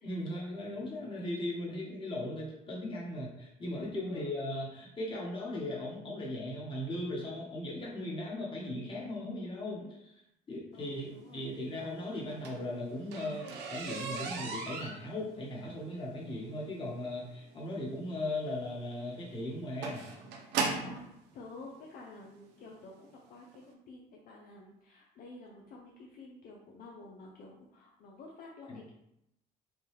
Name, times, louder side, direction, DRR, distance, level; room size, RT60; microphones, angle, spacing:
voice 1, 0.0-10.1 10.5-13.4 13.7-20.0 28.7-28.8, left 1 dB, 30° left, -4 dB, 1.4 m, -38 dB
voice 2, 10.7-11.4 20.8-28.9, left 3 dB, 60° left, -2 dB, 0.6 m, -51 dB
sound 1, 12.2-21.1 22.0-22.1 22.6-22.8 23.1-23.2 23.5-23.6, right 4 dB, 85° right, 0.7 m, -38 dB
5.2 x 2.3 x 3.2 m, 0.81 s
cardioid pair, 110°, 17 cm